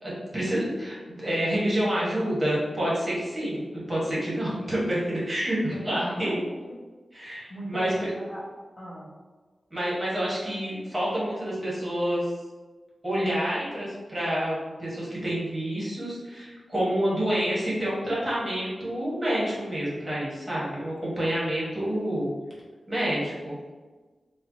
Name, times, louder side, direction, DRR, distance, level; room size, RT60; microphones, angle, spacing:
voice 1, 0.0-6.4 7.1-7.9 9.7-12.3 13.0-22.3 22.9-23.6, equal, 20° right, -7 dB, 1.0 m, -28 dB
voice 2, 5.7-6.8 7.5-8.4 8.8-9.1, equal, 40° left, -6 dB, 0.8 m, -38 dB
4.3 x 2.1 x 2.6 m, 1.3 s
wide cardioid pair, 145°, 0 cm